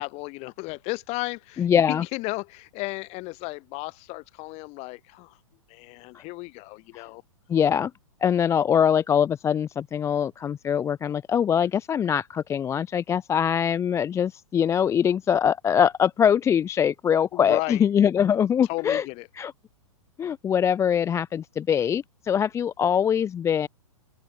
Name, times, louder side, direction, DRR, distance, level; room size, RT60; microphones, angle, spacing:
voice 1, 0.0-5.4 5.7-7.2 17.3-17.8 18.7-19.3, left 25 dB, 35° left, 3.3 m, -34 dB
voice 2, 1.6-2.0 6.1-6.2 6.9-7.1 7.5-7.9 8.2-19.1 19.4-19.5 20.2-23.7, left 8 dB, 15° left, 0.6 m, -23 dB
open air
figure-of-eight pair, 110°, 18 cm